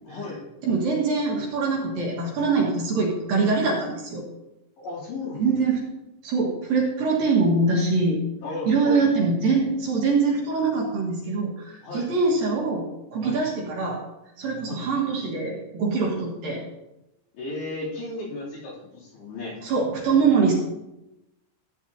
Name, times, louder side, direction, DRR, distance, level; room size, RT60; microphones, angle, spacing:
voice 1, 0.1-0.4 4.8-5.4 8.4-9.0 11.8-12.1 13.2-13.4 14.7-14.8 16.0-16.1 17.3-19.6, left 2 dB, 65° left, -7 dB, 5.1 m, -34 dB
voice 2, 0.6-4.2 5.4-5.8 6.2-8.2 8.7-12.9 13.1-14.0 14.4-16.6 19.6-20.5, right 4 dB, 60° right, -3 dB, 2.7 m, -23 dB
14.5 x 9.1 x 2.8 m, 0.93 s
omnidirectional pair, 5.3 m